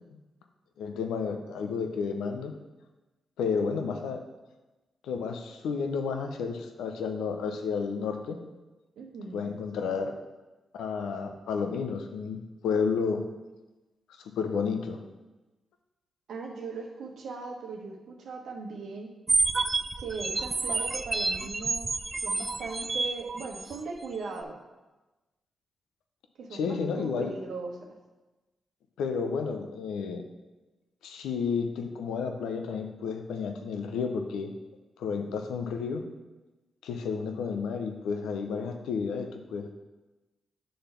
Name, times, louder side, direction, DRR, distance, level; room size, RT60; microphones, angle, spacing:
voice 1, 0.8-2.5 3.4-4.2 5.0-8.4 9.3-10.1 10.7-13.2 14.4-15.0 26.5-27.3 29.0-30.2 31.0-34.5 35.0-36.1 36.8-39.7, left 5 dB, 85° left, 5 dB, 0.6 m, -31 dB
voice 2, 9.0-9.5 16.3-19.1 20.0-21.9 22.2-24.6 26.4-27.8, right 4 dB, 75° right, 1 dB, 1.1 m, -39 dB
sound 1, 19.3-23.8, right 3 dB, 40° right, 0.4 m, -29 dB
7.7 x 3.4 x 5.8 m, 1.1 s
supercardioid pair, 50°, 0 cm